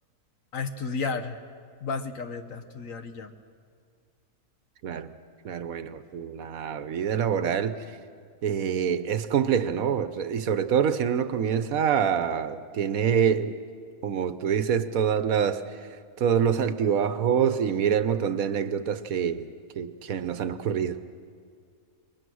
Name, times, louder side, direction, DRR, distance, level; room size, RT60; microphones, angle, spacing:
voice 1, 0.5-1.4 1.8-3.3, left 4 dB, 65° left, 8 dB, 1.5 m, -32 dB
voice 2, 5.4-7.8 8.4-13.5 14.0-15.9 16.2-19.5 19.8-21.0, right 8 dB, 70° right, 12 dB, 1.3 m, -26 dB
29.0 x 22.5 x 6.3 m, 2.1 s
omnidirectional pair, 1.6 m